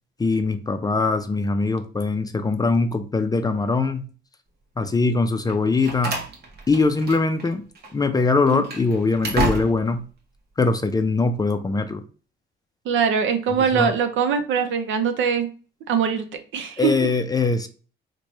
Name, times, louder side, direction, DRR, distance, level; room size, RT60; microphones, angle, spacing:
voice 1, 0.2-4.0 4.8-6.2 6.7-7.6 7.9-10.1 10.6-12.0 13.7-13.9 16.8-17.7, left 3 dB, 20° left, 0.4 m, -22 dB
Slam, 5.5-7.5 7.8-7.9 8.4-10.0, right 2 dB, 55° right, 0.9 m, -30 dB
voice 2, 12.9-15.5 15.9-16.3 16.5-17.1, right 7 dB, 75° right, 0.6 m, -22 dB
3.0 x 2.2 x 3.9 m
cardioid pair, 90°, 20 cm